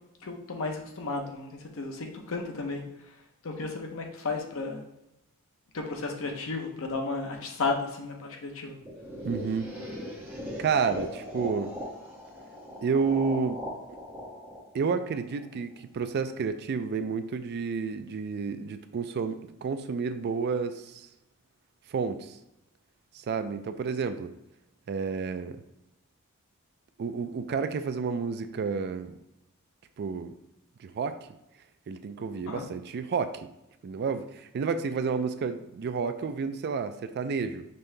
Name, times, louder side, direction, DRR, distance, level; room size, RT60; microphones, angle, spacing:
voice 1, 0.2-1.5 1.7-2.8 3.4-4.8 5.7-8.8 32.5-32.7, left 3 dB, 65° left, 2 dB, 0.8 m, -33 dB
sound 1, 8.8-15.7, equal, 10° right, 1.0 m, -39 dB
voice 2, 9.2-9.7 10.6-11.7 12.8-13.6 14.7-21.1 21.9-22.4 23.1-24.3 24.9-25.6 27.0-29.1 30.0-30.3 30.8-31.2 31.9-33.5 33.8-37.7, right 5 dB, 45° right, 10 dB, 0.3 m, -30 dB
5.4 x 3.3 x 2.7 m, 0.88 s
head